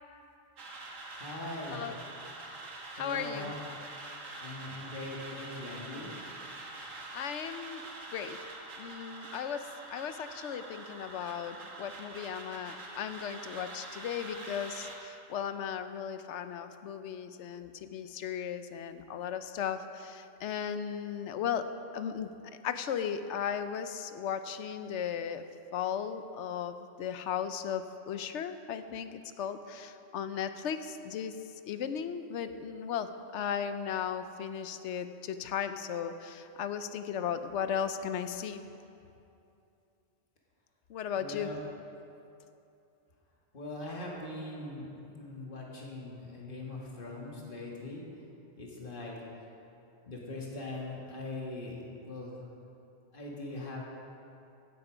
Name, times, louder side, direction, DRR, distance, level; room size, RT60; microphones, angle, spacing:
sound 1, 0.6-15.0, right 2 dB, 85° right, 1.7 m, -45 dB
voice 1, 1.1-1.8 3.0-3.5 4.4-6.1 41.2-41.6 43.5-48.0 48.6-49.1 50.1-52.3 53.1-53.8, left 2 dB, 45° left, -3 dB, 2.0 m, -41 dB
voice 2, 2.9-3.5 7.1-7.8 8.1-8.4 8.8-9.6 9.9-21.7 21.9-22.3 22.6-25.4 25.7-31.3 31.6-38.6 40.9-41.5, left 8 dB, 70° left, 10 dB, 0.9 m, -36 dB
16.0 x 8.0 x 5.0 m, 2.7 s
omnidirectional pair, 1.3 m